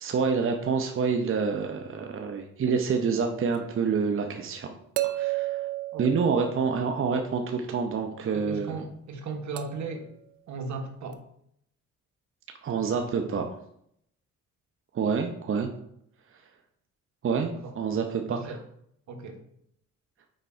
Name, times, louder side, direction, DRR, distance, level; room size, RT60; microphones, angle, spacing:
voice 1, 0.0-4.7 5.0-5.7 6.0-8.8 12.6-13.6 14.9-15.7 16.3-16.5 17.2-18.6, right 5 dB, 45° right, 4 dB, 0.8 m, -27 dB
sound 1, 3.5-3.6 5.0-7.0 9.6-10.0 11.1-11.2, right 17 dB, 90° right, 0.6 m, -32 dB
voice 2, 8.3-10.1 10.5-11.2 13.0-13.1 17.6-17.7 18.3-18.6 19.1-19.4, right 4 dB, 70° right, 5 dB, 1.3 m, -36 dB
6.6 x 4.7 x 4.4 m, 0.72 s
cardioid pair, 90°, 30 cm